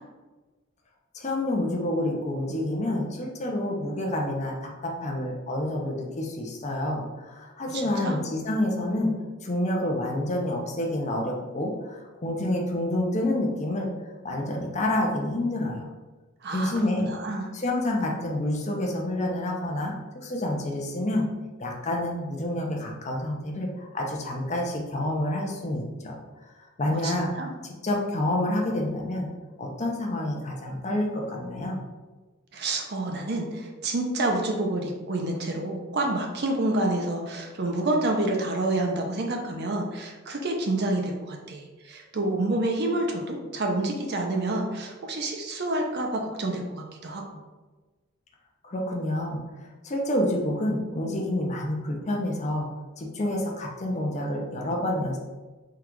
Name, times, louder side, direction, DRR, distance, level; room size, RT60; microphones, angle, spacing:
voice 1, 1.1-9.1 9.4-13.9 14.2-15.9 16.5-17.1 17.5-21.3 21.6-26.2 26.6-27.5 27.8-29.3 29.6-31.8 48.6-52.7 53.0-55.2, left 1 dB, 35° left, 0 dB, 0.6 m, -28 dB
voice 2, 7.7-8.2 16.4-16.7 17.0-17.5 26.9-27.5 32.5-47.4, right 2 dB, 50° right, 2 dB, 0.6 m, -28 dB
3.7 x 2.4 x 4.5 m, 1.2 s
head